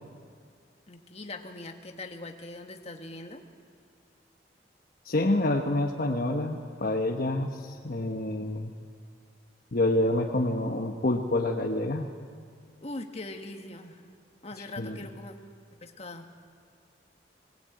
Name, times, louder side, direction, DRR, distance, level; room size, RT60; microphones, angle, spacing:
voice 1, 0.9-3.4 12.8-14.1 14.4-15.3 15.8-16.3, left 2 dB, 35° left, 4 dB, 1.6 m, -41 dB
voice 2, 5.0-8.7 9.7-12.1 14.6-15.0, left 1 dB, 55° left, 3 dB, 1.1 m, -27 dB
21.0 x 18.5 x 9.0 m, 2.1 s
head